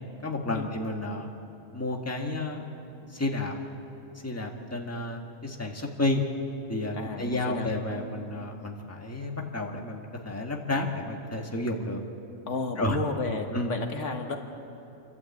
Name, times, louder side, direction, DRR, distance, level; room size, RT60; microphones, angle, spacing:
voice 1, 0.2-1.3 1.7-2.6 3.0-3.6 4.2-6.2 6.7-12.0 12.8-13.0 13.5-13.7, left 2 dB, 10° left, 1 dB, 1.6 m, -31 dB
voice 2, 6.9-7.7 7.9-8.0 12.5-14.4, left 3 dB, 70° left, 4 dB, 1.8 m, -32 dB
29.0 x 12.0 x 8.6 m, 2.8 s
omnidirectional pair, 1.3 m